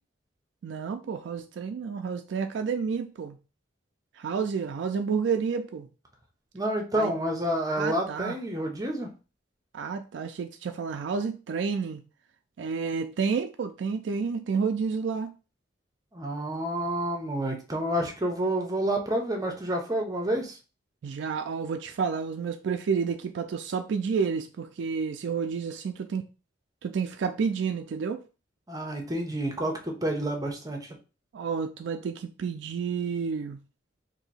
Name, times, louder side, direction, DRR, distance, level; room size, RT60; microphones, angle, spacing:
voice 1, 0.6-3.4 4.2-5.9 6.9-7.1 7.7-8.4 9.7-12.0 12.6-15.3 21.0-26.2 26.8-28.2 31.3-33.6, right 5 dB, 75° right, 0.3 m, -30 dB
voice 2, 6.5-9.1 16.1-20.6 28.7-31.0, right 1 dB, 20° right, 0.7 m, -29 dB
2.8 x 2.6 x 4.1 m
head